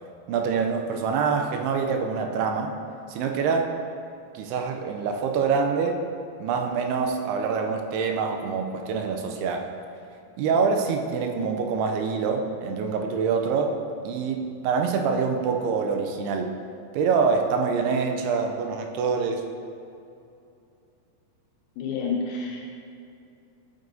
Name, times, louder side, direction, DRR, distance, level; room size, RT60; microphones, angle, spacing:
voice 1, 0.3-2.8 3.1-3.8 4.3-6.1 6.4-9.7 10.4-13.8 14.0-16.5 16.9-19.5, right 5 dB, 85° right, 3 dB, 2.5 m, -25 dB
voice 2, 21.8-22.7, left 4 dB, 75° left, 0 dB, 2.3 m, -29 dB
9.0 x 8.1 x 2.6 m, 2.7 s
omnidirectional pair, 4.7 m